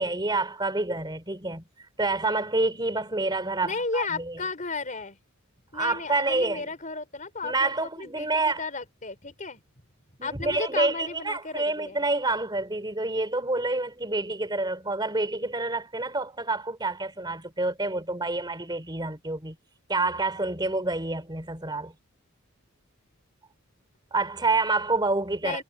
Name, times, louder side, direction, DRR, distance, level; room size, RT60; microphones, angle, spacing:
voice 1, 0.0-1.6 2.0-4.4 5.7-6.7 7.4-8.6 10.2-19.6 19.9-21.9 24.1-25.6, right 2 dB, 20° right, 3.1 m, -28 dB
voice 2, 3.6-5.2 5.7-9.6 10.2-12.0 25.4-25.6, left 4 dB, 35° left, 4.1 m, -34 dB
head